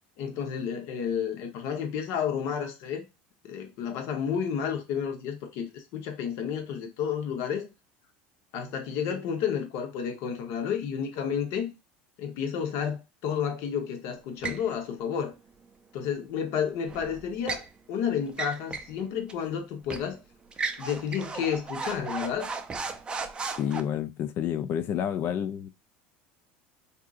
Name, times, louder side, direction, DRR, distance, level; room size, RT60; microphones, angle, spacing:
voice 1, 0.2-3.1 3.4-7.7 8.5-11.7 12.2-15.3 15.9-17.6 17.9-20.2 20.8-22.5, left 7 dB, 60° left, 1.0 m, -31 dB
sound 1, 14.4-14.7 16.9-17.7 18.3-19.0 19.3-19.4 19.9-20.1 20.5-23.8, right 4 dB, 20° right, 0.5 m, -35 dB
voice 2, 23.6-25.7, left 9 dB, 45° left, 0.4 m, -29 dB
3.6 x 2.7 x 2.4 m
supercardioid pair, 130°, 5 cm